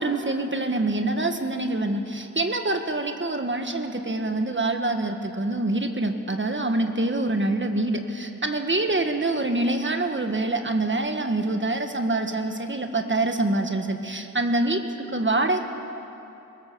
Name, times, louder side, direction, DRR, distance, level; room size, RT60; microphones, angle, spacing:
voice 1, 0.0-14.8 15.1-15.6, right 2 dB, 35° right, 5 dB, 1.6 m, -25 dB
22.0 x 19.0 x 6.9 m, 2.8 s
wide cardioid pair, 85°, 32 cm